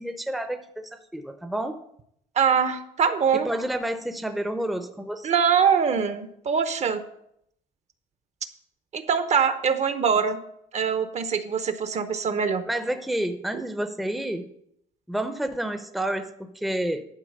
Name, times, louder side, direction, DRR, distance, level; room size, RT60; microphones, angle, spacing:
voice 1, 0.0-1.8 3.3-5.3 12.7-14.5 15.1-17.0, right 1 dB, ahead, 8 dB, 0.7 m, -29 dB
voice 2, 2.4-3.5 5.2-7.0 8.9-10.4 10.7-12.6 13.5-13.6, right 6 dB, 40° right, 10 dB, 0.8 m, -23 dB
11.5 x 4.5 x 6.6 m, 0.74 s
cardioid pair, 110°, 17 cm